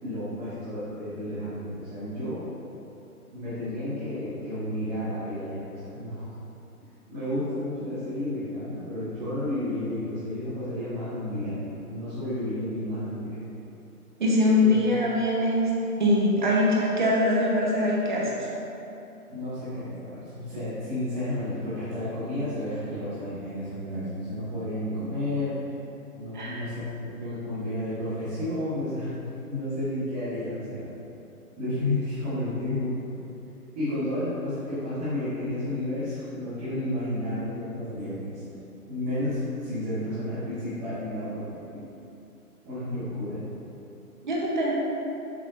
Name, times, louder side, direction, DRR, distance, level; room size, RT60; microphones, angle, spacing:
voice 1, 0.0-2.4 3.3-6.2 7.1-13.4 14.6-14.8 19.3-25.6 26.1-29.1 29.5-30.8 31.6-32.9 33.7-38.3 38.9-41.9 42.6-43.4, left 1 dB, 10° right, -18 dB, 1.5 m, -31 dB
voice 2, 14.2-15.7 16.0-18.5 26.3-26.6 44.2-44.7, left 1 dB, 30° right, -4 dB, 1.2 m, -23 dB
10.0 x 6.2 x 2.8 m, 2.9 s
hypercardioid pair, 165°, 46 cm